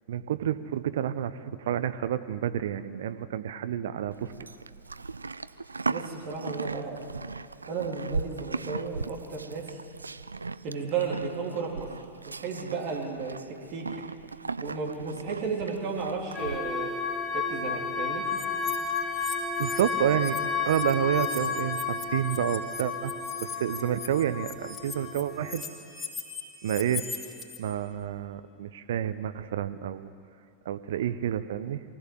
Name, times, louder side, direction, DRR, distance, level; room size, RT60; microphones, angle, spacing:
voice 1, 0.1-4.3 19.6-23.1 23.4-25.6 26.6-27.1 27.6-30.1 30.6-31.8, right 10 dB, 60° right, 12 dB, 0.9 m, -29 dB
Livestock farm animals working animals, 4.1-16.6, right 4 dB, 80° right, 0.4 m, -38 dB
voice 2, 5.9-7.0 7.7-9.8 10.6-11.9 12.2-13.4 13.7-13.9 14.6-16.9 17.3-18.2, right 5 dB, 45° right, -2 dB, 3.4 m, -33 dB
sound 1, 16.3-25.6, left 5 dB, ahead, 1.8 m, -32 dB
sound 2, 18.3-20.4 20.6-27.6, left 5 dB, 20° left, 3.3 m, -40 dB
23.5 x 16.0 x 7.6 m, 2.4 s
figure-of-eight pair, 90°, 0 cm